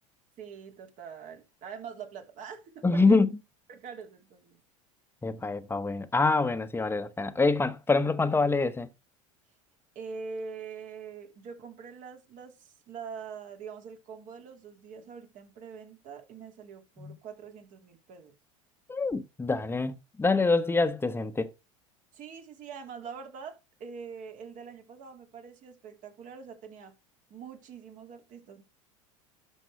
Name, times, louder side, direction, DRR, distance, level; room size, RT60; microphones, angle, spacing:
voice 1, 0.4-3.2 3.7-4.6 9.9-18.4 22.1-26.9 27.3-28.6, right 6 dB, 50° right, 2.7 m, -44 dB
voice 2, 2.8-3.3 5.2-8.9 17.0-17.1 18.9-21.5, left 3 dB, 15° left, 1.0 m, -25 dB
12.0 x 5.5 x 3.3 m
hypercardioid pair, 90°, 17 cm